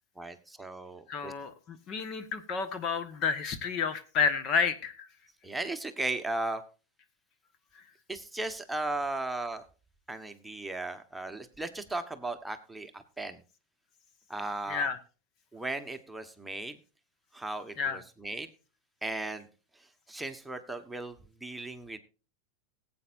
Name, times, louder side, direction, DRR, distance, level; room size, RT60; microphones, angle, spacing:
voice 1, 0.2-1.3 5.4-6.6 8.1-9.6 10.1-13.4 14.3-14.9 15.5-16.8 17.3-18.5 19.0-19.5 20.1-22.0, right 2 dB, 5° right, 6 dB, 1.4 m, -36 dB
voice 2, 1.1-5.1 7.7-7.8 14.7-15.0 17.8-18.0, left 5 dB, 40° left, 11 dB, 1.5 m, -30 dB
19.5 x 8.7 x 2.6 m, 0.34 s
hypercardioid pair, 90°, 0 cm